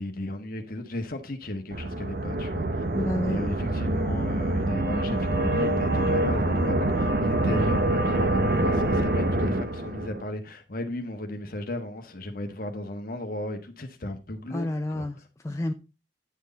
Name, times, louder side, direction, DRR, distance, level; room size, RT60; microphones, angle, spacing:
voice 1, 0.0-2.8 3.2-15.1, left 1 dB, 50° left, 1.3 m, -35 dB
sound 1, 1.7-10.2, right 1 dB, 50° right, 0.8 m, -25 dB
voice 2, 2.9-3.4 14.5-15.7, left 1 dB, 15° left, 0.5 m, -30 dB
9.6 x 6.4 x 3.9 m
head